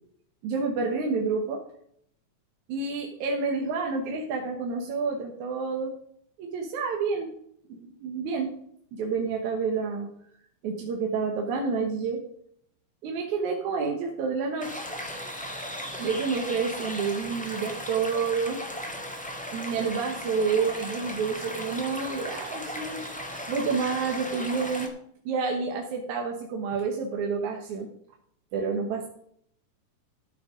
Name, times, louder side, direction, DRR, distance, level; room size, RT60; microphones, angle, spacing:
voice 1, 0.4-1.6 2.7-5.9 6.4-7.3 7.7-8.5 8.9-10.1 10.6-12.2 13.0-14.8 16.0-18.6 19.5-23.1 23.5-24.9 25.3-27.9 28.5-29.1, right 5 dB, 70° right, 1 dB, 2.5 m, -29 dB
sound 1, 14.6-24.9, equal, 10° left, 0.5 m, -36 dB
13.0 x 6.9 x 5.1 m, 0.69 s
omnidirectional pair, 3.6 m